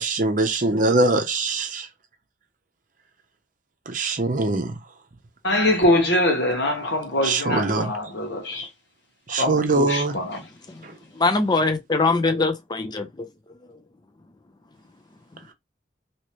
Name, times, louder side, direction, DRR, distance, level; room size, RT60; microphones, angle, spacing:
voice 1, 0.0-1.9 3.9-4.7 7.2-7.9 9.3-10.2, right 2 dB, 45° right, 0.7 m, -22 dB
voice 2, 5.4-8.7 9.4-10.4, left 1 dB, 70° left, 1.4 m, -23 dB
voice 3, 11.1-13.3 13.7-13.8, left 3 dB, 25° left, 0.6 m, -22 dB
3.1 x 2.9 x 3.0 m
head